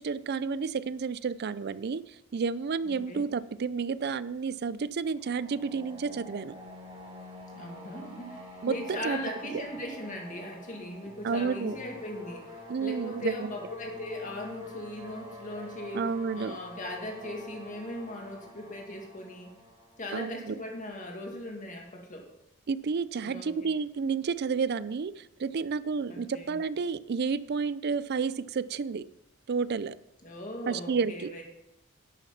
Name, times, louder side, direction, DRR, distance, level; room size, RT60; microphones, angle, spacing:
voice 1, 0.0-6.5 8.6-9.2 9.5-9.6 11.2-11.8 12.7-13.5 15.9-16.6 20.1-20.6 22.7-29.0 29.5-29.9 30.7-31.3, right 5 dB, 50° right, 17 dB, 0.4 m, -31 dB
voice 2, 2.8-3.2 7.5-16.1 16.3-19.5 20.0-22.3 23.2-23.7 26.1-26.6 30.2-31.4, left 1 dB, 40° left, 0 dB, 2.2 m, -39 dB
sound 1, 5.1-20.9, left 1 dB, 30° right, 2.9 m, -47 dB
11.0 x 6.5 x 5.8 m, 0.90 s
head